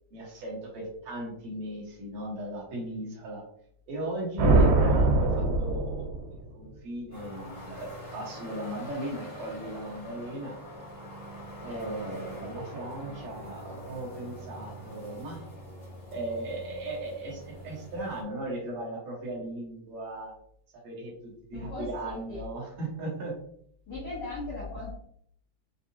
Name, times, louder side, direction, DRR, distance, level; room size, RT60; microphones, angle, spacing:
voice 1, 0.1-3.4 3.9-10.5 11.6-15.4 16.1-20.3 20.8-23.3, right 1 dB, 55° right, -4 dB, 2.1 m, -37 dB
sound 1, 4.4-6.5, right 2 dB, 85° right, 2.9 m, -22 dB
sound 2, 7.1-18.2, equal, 50° left, 0.7 m, -44 dB
voice 2, 21.5-22.4 23.9-24.9, left 2 dB, 90° left, -6 dB, 1.2 m, -37 dB
6.3 x 2.6 x 2.7 m, 0.66 s
omnidirectional pair, 4.5 m